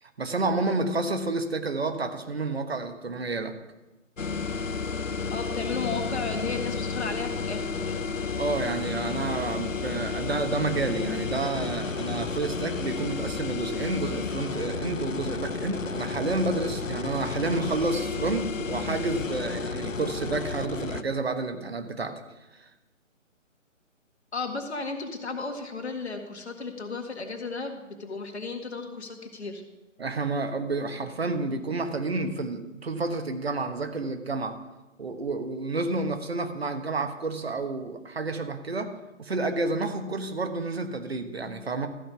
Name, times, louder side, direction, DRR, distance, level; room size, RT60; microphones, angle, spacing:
voice 1, 0.0-3.5 8.4-22.2 22.5-22.7 30.0-34.6 35.0-41.9, right 3 dB, 50° right, 8 dB, 1.3 m, -30 dB
sound 1, 4.2-21.0, left 4 dB, 70° left, 0.8 m, -32 dB
voice 2, 5.3-8.1 24.3-29.6, left 4 dB, 55° left, 4 dB, 2.0 m, -34 dB
13.5 x 5.8 x 6.9 m, 1.1 s
figure-of-eight pair, 150°, 40 cm